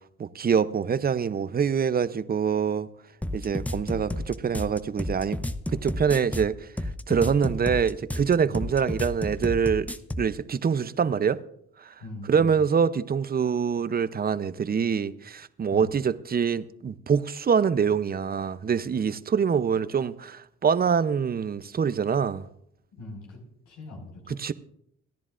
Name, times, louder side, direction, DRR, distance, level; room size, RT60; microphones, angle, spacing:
voice 1, 0.2-2.9 3.3-5.4 5.7-6.5 7.1-9.9 10.2-11.4 11.8-11.9 12.3-22.5 24.4-24.5, right 6 dB, 30° right, 0.7 m, -25 dB
sound 1, 3.2-10.3, left 1 dB, 5° left, 0.7 m, -31 dB
voice 2, 12.0-12.6 15.7-15.9 22.9-23.4 23.7-24.4, left 2 dB, 90° left, 5.2 m, -41 dB
28.5 x 10.5 x 2.5 m
cardioid pair, 90°, 30 cm